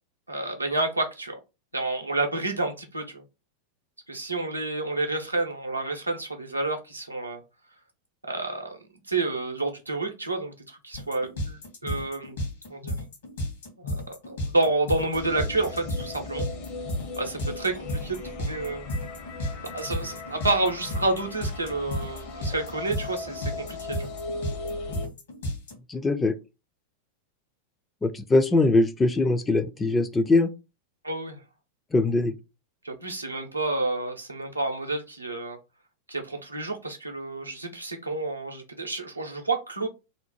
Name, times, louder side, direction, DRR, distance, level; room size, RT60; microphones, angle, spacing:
voice 1, 0.3-1.4 1.7-3.2 4.1-7.4 8.3-8.8 9.1-12.4 12.7-12.9 13.8-16.5 17.2-18.9 19.7-24.1 31.0-31.4 32.8-35.6 36.1-39.9, right 2 dB, 80° right, 0.6 m, -29 dB
sound 1, 10.9-25.7, equal, 65° left, 1.0 m, -32 dB
sound 2, 15.1-25.1, left 3 dB, 45° left, 0.6 m, -38 dB
voice 2, 25.9-26.3 28.0-30.5 31.9-32.3, left 2 dB, 15° left, 0.3 m, -22 dB
2.7 x 2.0 x 2.9 m
figure-of-eight pair, 90°, 0 cm